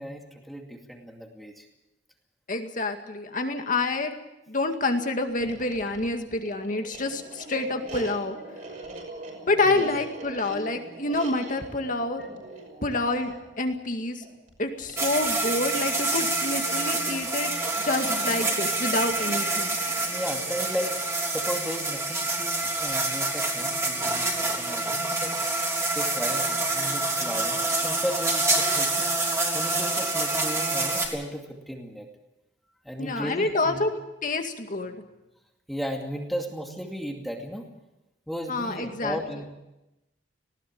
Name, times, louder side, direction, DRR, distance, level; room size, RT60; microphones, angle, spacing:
voice 1, 0.0-1.7 9.6-9.9 10.7-10.8 12.2-12.3 20.0-20.9 21.3-25.4 25.9-29.1 29.5-32.1 32.8-33.8 35.7-37.7 38.3-39.5, equal, ahead, 1 dB, 2.4 m, -35 dB
voice 2, 2.5-4.1 4.5-8.4 9.5-12.2 12.8-14.3 14.6-17.5 17.8-19.8 33.0-33.9 34.2-35.0 38.5-39.2, left 2 dB, 45° left, 5 dB, 2.1 m, -27 dB
sound 1, 5.3-24.6, right 2 dB, 45° right, 6.0 m, -43 dB
sound 2, 15.0-31.1, right 2 dB, 15° right, 3.7 m, -27 dB
19.5 x 17.5 x 8.7 m, 0.95 s
head